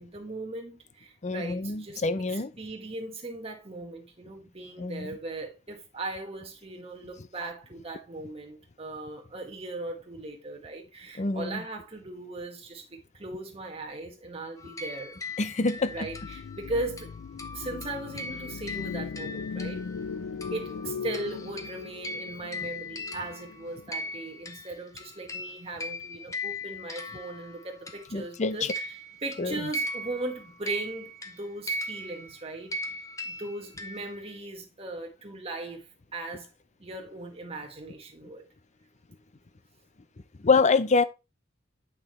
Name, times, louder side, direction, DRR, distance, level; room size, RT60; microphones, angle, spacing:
voice 1, 0.0-2.0 2.3-15.2 15.9-17.1 17.5-19.8 20.5-32.8 33.2-36.5 36.8-38.4, right 2 dB, 30° right, 1.9 m, -38 dB
voice 2, 1.2-2.5 4.8-5.2 11.2-11.6 15.4-16.1 20.4-20.5 28.1-28.7 29.4-29.7 40.4-41.0, left 4 dB, 40° left, 0.6 m, -26 dB
sound 1, 14.6-20.1 20.4-28.3 28.6-34.3, left 1 dB, 15° left, 1.0 m, -39 dB
sound 2, 15.8-24.1, left 5 dB, 85° left, 0.4 m, -39 dB
8.7 x 5.7 x 3.1 m
head